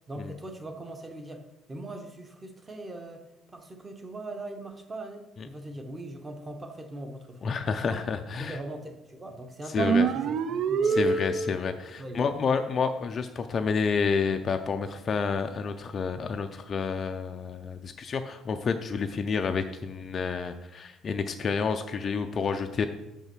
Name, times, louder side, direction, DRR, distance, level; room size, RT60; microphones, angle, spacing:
voice 1, 0.1-8.0 8.4-11.6 12.0-12.3, right 1 dB, 15° right, 5 dB, 0.8 m, -41 dB
voice 2, 7.4-8.6 9.7-10.1 10.8-22.9, left 5 dB, 30° left, 7 dB, 0.4 m, -29 dB
sound 1, 9.8-11.7, right 5 dB, 50° right, 0.4 m, -25 dB
6.5 x 5.5 x 6.0 m, 0.95 s
cardioid pair, 165°, 0 cm